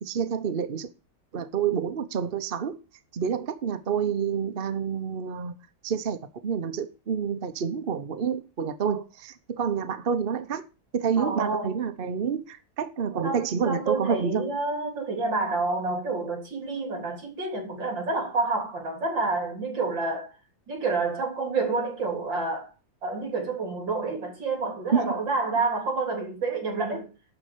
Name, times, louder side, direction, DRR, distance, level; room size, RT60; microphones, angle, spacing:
voice 1, 0.0-0.9 1.3-2.8 3.1-5.5 5.8-10.6 10.9-14.5 24.9-25.1, right 7 dB, 45° right, 0.7 m, -28 dB
voice 2, 11.2-11.8 13.2-20.3 20.7-22.7 23.0-27.1, right 3 dB, 70° right, 4.3 m, -29 dB
11.5 x 4.4 x 8.3 m
omnidirectional pair, 2.1 m